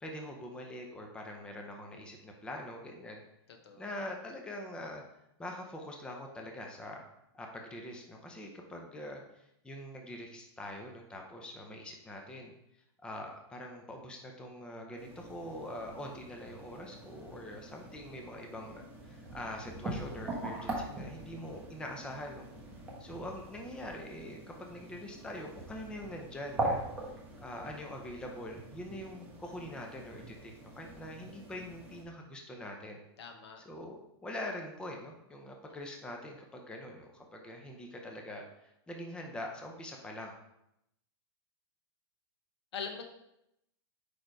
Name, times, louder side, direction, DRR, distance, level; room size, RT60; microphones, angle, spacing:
voice 1, 0.0-3.2 3.8-5.0 5.4-7.0 7.3-12.5 13.0-22.5 23.0-26.8 27.4-33.0 33.6-40.3, left 1 dB, 5° left, 2 dB, 0.6 m, -44 dB
sound 1, 15.0-32.0, right 1 dB, 10° right, 1.2 m, -42 dB
voice 2, 33.2-33.6 35.7-35.8 42.7-43.0, left 6 dB, 80° left, 5 dB, 1.1 m, -42 dB
5.0 x 4.3 x 4.6 m, 0.81 s
supercardioid pair, 150°, 14 cm